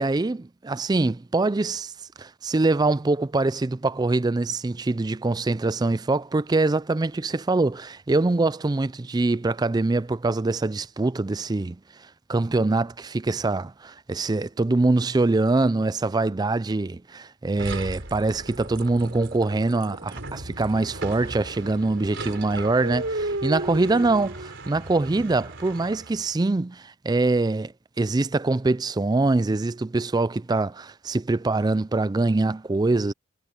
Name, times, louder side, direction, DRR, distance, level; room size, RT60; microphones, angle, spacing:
voice 1, 0.0-1.9 2.2-11.8 12.3-27.7 28.0-33.1, right 2 dB, 20° right, 0.4 m, -24 dB
sound 1, 17.6-26.3, right 2 dB, 60° right, 4.7 m, -35 dB
head